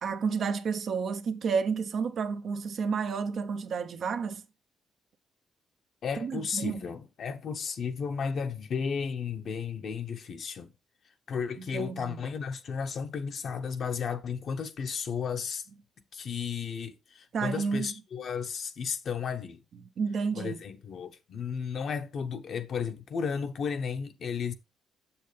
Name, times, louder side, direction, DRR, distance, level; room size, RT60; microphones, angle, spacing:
voice 1, 0.0-4.4 6.2-6.8 11.6-12.2 17.3-17.9 20.0-20.6, right 5 dB, 60° right, 0.8 m, -31 dB
voice 2, 6.0-10.7 11.3-15.6 16.1-19.6 20.3-24.5, left 6 dB, 60° left, 1.0 m, -34 dB
7.2 x 6.7 x 3.3 m
cardioid pair, 90°, 0 cm